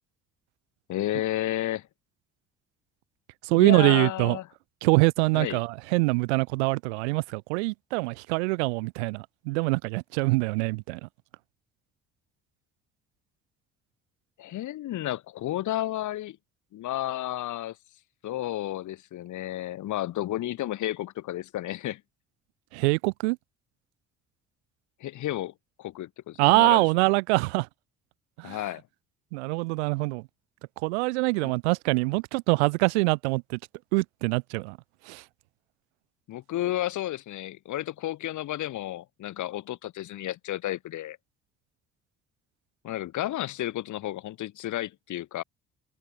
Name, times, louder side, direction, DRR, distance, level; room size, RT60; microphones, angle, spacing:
voice 1, 0.9-1.9 3.5-4.5 5.3-5.6 14.4-16.4 16.7-17.8 18.2-22.0 25.0-26.9 28.4-28.8 31.4-31.5 36.3-41.2 42.8-45.4, left 14 dB, 60° left, 2.2 m, -32 dB
voice 2, 3.4-4.4 4.8-11.1 22.7-23.4 26.4-27.7 28.4-28.6 29.3-30.2 30.8-33.6 33.9-34.8 35.1-35.2, right 26 dB, 80° right, 0.8 m, -24 dB
hypercardioid pair, 55°, 33 cm